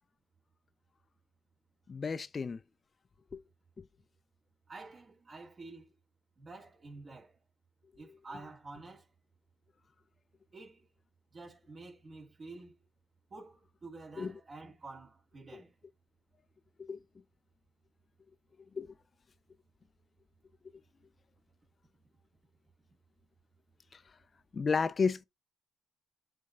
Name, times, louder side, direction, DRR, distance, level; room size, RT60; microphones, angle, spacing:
voice 1, 1.9-2.6 3.3-3.4 3.8-3.9 14.2-14.3 15.5-15.6 16.8-17.0 18.8-18.9 23.9-24.0 24.5-25.2, left 5 dB, 35° left, 0.4 m, -32 dB
voice 2, 4.7-5.9 6.4-7.4 8.0-9.1 10.5-10.9 11.3-12.8 13.3-15.7, right 3 dB, 40° right, 3.1 m, -49 dB
8.3 x 3.3 x 4.3 m
cardioid pair, 90°, 0 cm